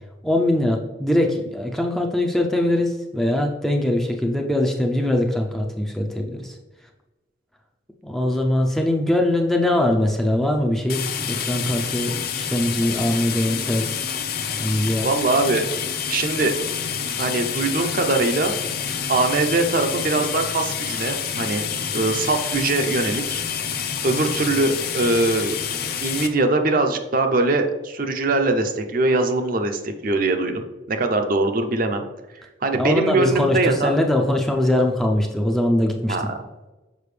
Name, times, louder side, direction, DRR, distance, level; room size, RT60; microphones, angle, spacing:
voice 1, 0.2-6.6 8.0-13.9 14.6-15.1 32.8-36.3, left 1 dB, ahead, 1 dB, 0.5 m, -22 dB
sound 1, 10.9-26.3, left 7 dB, 50° left, 0.6 m, -28 dB
voice 2, 15.0-15.7 16.1-16.5 17.2-18.5 19.1-21.7 21.9-23.4 24.0-25.5 26.0-32.0 32.6-33.9 36.1-36.3, right 2 dB, 45° right, 6 dB, 0.6 m, -22 dB
6.8 x 5.1 x 3.2 m, 1.1 s
head